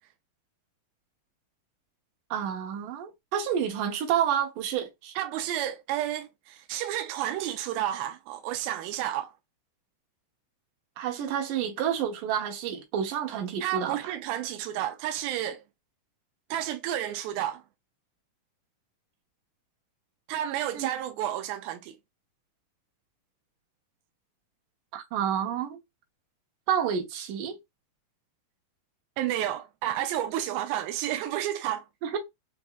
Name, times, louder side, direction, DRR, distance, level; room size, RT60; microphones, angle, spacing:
voice 1, 2.3-5.1 11.0-14.1 20.7-20.9 24.9-25.8 26.7-27.5 32.0-32.2, right 9 dB, 70° right, 2.5 m, -29 dB
voice 2, 5.2-9.3 13.6-15.6 16.5-17.6 20.3-22.0 29.2-31.9, right 12 dB, 90° right, 2.4 m, -31 dB
6.0 x 2.6 x 2.3 m
omnidirectional pair, 4.1 m